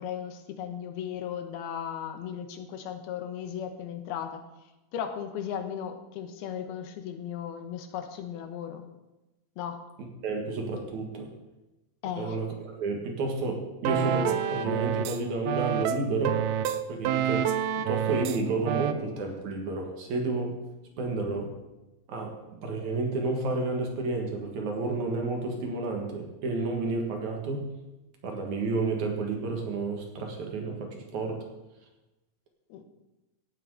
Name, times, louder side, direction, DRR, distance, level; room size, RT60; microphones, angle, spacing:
voice 1, 0.0-4.4 4.9-8.9 9.6-9.8 12.0-12.4 32.7-32.8, left 9 dB, 90° left, 8 dB, 3.0 m, -36 dB
voice 2, 10.2-11.3 12.2-16.4 16.9-17.5 17.9-20.6 21.0-21.5 22.1-27.7 28.2-31.4, right 3 dB, 55° right, 2 dB, 2.8 m, -31 dB
sound 1, 13.9-15.2 15.5-18.4 18.7-18.9, right 9 dB, 90° right, 2.6 m, -28 dB
16.0 x 9.0 x 4.9 m, 1.0 s
omnidirectional pair, 4.4 m